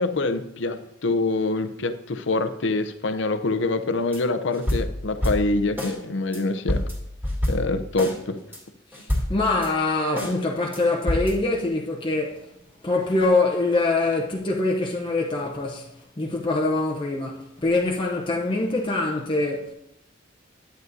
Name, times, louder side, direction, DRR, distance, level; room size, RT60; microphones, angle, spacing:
voice 1, 0.0-6.8 7.5-8.4, left 3 dB, 70° left, 0.6 m, -25 dB
sound 1, 4.1-4.2 4.5-6.0 6.3-6.4 6.7-8.2 8.5-8.6 8.9-9.7 10.2-10.3 10.7-10.8 11.1-11.4, left 1 dB, 10° right, 2.2 m, -27 dB
voice 2, 9.3-12.5 12.8-15.9 16.2-19.7, left 2 dB, 25° left, 0.7 m, -24 dB
11.0 x 9.1 x 2.7 m
head